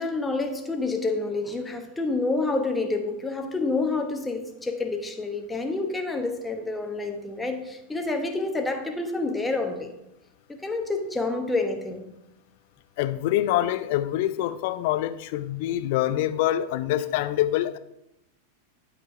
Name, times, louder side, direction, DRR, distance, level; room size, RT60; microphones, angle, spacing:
voice 1, 0.0-9.9 10.5-12.1, left 3 dB, 10° left, 1.1 m, -28 dB
voice 2, 13.0-17.8, left 13 dB, 50° left, 0.5 m, -25 dB
11.5 x 3.9 x 4.5 m
figure-of-eight pair, 90°, 0 cm